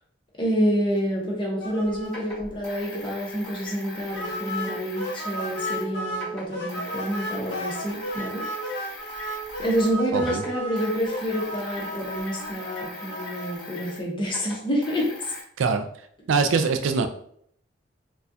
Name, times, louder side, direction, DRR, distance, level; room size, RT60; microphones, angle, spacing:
voice 1, 0.4-8.4 9.6-15.3, equal, 25° left, -4 dB, 0.9 m, -28 dB
sound 1, 1.0-1.1 2.0-5.9 6.1-9.9 10.2-15.4, left 2 dB, ahead, 1.3 m, -41 dB
sound 2, 1.6-2.1 2.4-2.5 2.9-3.0 4.1-6.3 6.5-13.5, equal, 55° left, 1.1 m, -34 dB
voice 2, 16.3-17.1, right 4 dB, 90° right, 8 dB, 0.4 m, -22 dB
4.1 x 2.3 x 2.7 m, 0.65 s
head